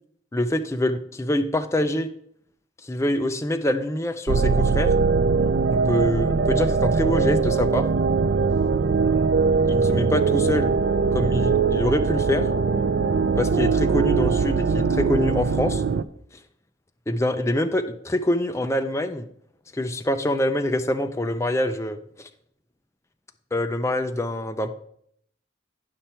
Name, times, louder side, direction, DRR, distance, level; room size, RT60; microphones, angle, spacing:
voice 1, 0.3-2.1 2.8-4.9 5.7-7.9 9.7-10.7 11.1-12.4 13.4-15.8 17.1-19.3 19.7-22.3 23.5-24.7, left 1 dB, 15° left, 7 dB, 0.5 m, -25 dB
sound 1, 4.3-16.0, right 5 dB, 65° right, 0.4 m, -21 dB
10.5 x 5.6 x 4.4 m, 0.67 s
head